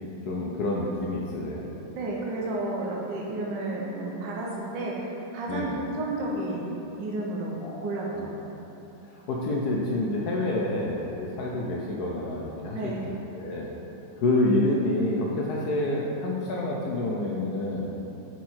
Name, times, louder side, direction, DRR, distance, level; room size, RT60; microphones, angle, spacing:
voice 1, 0.2-1.7 5.5-5.8 7.6-8.3 9.0-12.9 13.3-13.7 14.2-17.9, left 2 dB, 70° left, -3 dB, 1.0 m, -28 dB
voice 2, 1.9-4.5 4.7-6.6 7.0-8.3 12.7-13.0, right 2 dB, 75° right, -3 dB, 1.4 m, -32 dB
6.1 x 4.7 x 4.3 m, 3.0 s
omnidirectional pair, 2.1 m